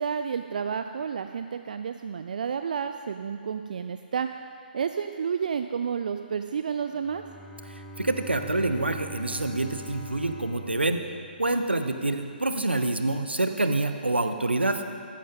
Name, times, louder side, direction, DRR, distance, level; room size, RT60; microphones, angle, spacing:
voice 1, 0.0-4.3 4.7-7.2, right 7 dB, 50° right, 8 dB, 0.4 m, -30 dB
Bowed string instrument, 6.9-11.9, right 1 dB, 5° left, 1.2 m, -43 dB
voice 2, 8.0-11.0 11.4-14.8, right 2 dB, 80° right, 8 dB, 0.8 m, -26 dB
15.0 x 10.5 x 3.7 m, 2.3 s
figure-of-eight pair, 135°, 6 cm